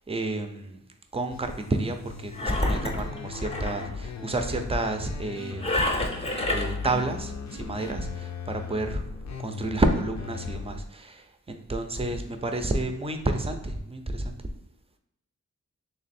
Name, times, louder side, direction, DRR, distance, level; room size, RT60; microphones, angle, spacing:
voice 1, 0.1-0.8 1.1-6.2 6.5-9.0 9.4-14.4, right 2 dB, 20° right, 6 dB, 0.5 m, -30 dB
sound 1, 1.3-10.8, left 5 dB, 55° left, 0.5 m, -38 dB
Engine, 2.3-3.9 5.6-6.9, left 1 dB, 20° left, 0.7 m, -28 dB
3.4 x 3.1 x 4.2 m, 0.84 s
wide cardioid pair, 95°, 32 cm